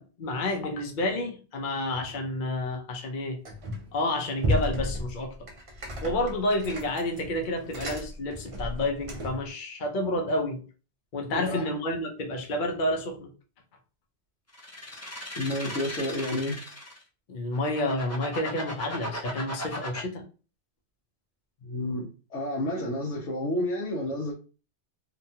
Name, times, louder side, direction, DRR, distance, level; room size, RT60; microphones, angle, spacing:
voice 1, 0.0-3.4 3.9-5.5 6.0-10.6 11.1-13.3 17.3-20.2, left 1 dB, 55° left, 0.7 m, -30 dB
sound 1, 3.4-4.0 4.4-9.5, left 1 dB, 65° right, 0.3 m, -33 dB
voice 2, 11.3-11.7 15.4-16.6 21.6-24.3, left 1 dB, 90° left, 1.1 m, -30 dB
sound 2, 14.5-17.0 17.5-20.0, equal, 25° left, 0.4 m, -37 dB
2.8 x 2.3 x 2.7 m
omnidirectional pair, 1.2 m